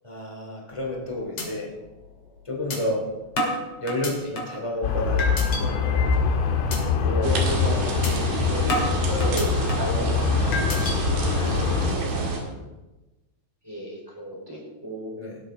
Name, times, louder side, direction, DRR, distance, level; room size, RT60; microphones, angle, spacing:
voice 1, 0.0-1.7 2.4-3.1 3.8-6.3 6.9-7.3 11.4-12.3 12.6-12.7 15.2-15.4, left 1 dB, 15° left, -2 dB, 1.1 m, -31 dB
sound 1, 0.7-1.0 1.4-1.5 1.9-2.0 2.7-2.8 3.4-4.6 5.2-5.6 6.1-6.3 6.7-6.8 7.2-7.4 8.0-8.1 8.7-10.0 10.5-11.0, left 1 dB, 40° left, 2.2 m, -29 dB
sound 2, 4.8-11.9, left 5 dB, 70° left, 3.8 m, -24 dB
voice 2, 7.0-10.8 12.1-12.7 13.6-15.2, equal, 5° right, -4 dB, 3.5 m, -34 dB
sound 3, 7.2-12.4, right 3 dB, 55° right, 3.3 m, -29 dB
18.5 x 12.5 x 3.9 m, 1.1 s
omnidirectional pair, 5.9 m